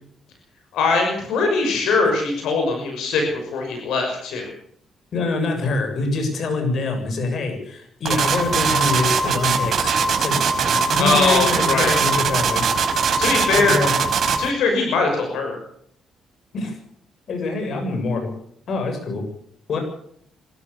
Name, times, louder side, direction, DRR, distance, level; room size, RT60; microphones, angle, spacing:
voice 1, 0.7-4.5 11.0-11.9 13.2-13.8 14.4-15.6, left 4 dB, 85° left, 2 dB, 6.1 m, -21 dB
voice 2, 5.1-12.7 13.5-13.9 16.5-16.8 17.3-18.3 18.7-19.2 19.7-19.8, left 3 dB, 60° left, 4 dB, 7.1 m, -25 dB
sound 1, 8.1-14.5, right 5 dB, 60° right, 4.8 m, -20 dB
26.5 x 14.0 x 7.0 m, 0.67 s
cardioid pair, 90°, 0 cm